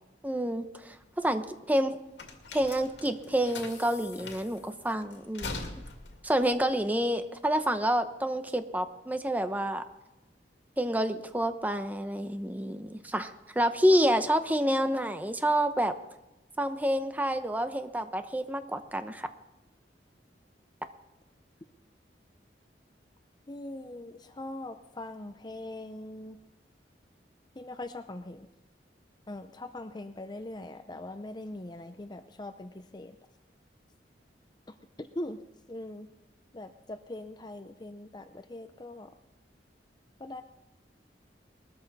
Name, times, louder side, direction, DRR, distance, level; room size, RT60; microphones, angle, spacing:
voice 1, 0.2-2.0 2.5-5.7 6.2-9.8 10.8-15.9 16.6-19.3, equal, 10° right, 8 dB, 0.9 m, -28 dB
sound 1, 0.9-7.7, left 3 dB, 85° left, 2.4 m, -43 dB
voice 2, 23.5-26.4 27.5-28.5 29.3-33.2 34.7-35.4 35.7-36.1 36.5-39.1 40.2-40.4, left 1 dB, 25° left, 9 dB, 0.6 m, -41 dB
21.0 x 13.5 x 4.2 m, 1.0 s
head